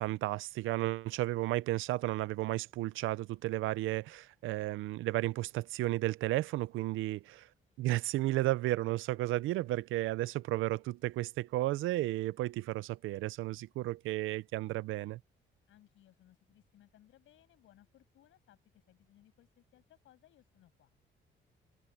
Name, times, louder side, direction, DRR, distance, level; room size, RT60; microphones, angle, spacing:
voice 1, 0.0-7.5 7.8-15.2, right 17 dB, 90° right, 0.6 m, -33 dB
voice 2, 15.7-20.9, left 13 dB, 80° left, 7.3 m, -64 dB
cardioid pair, 90°, 20 cm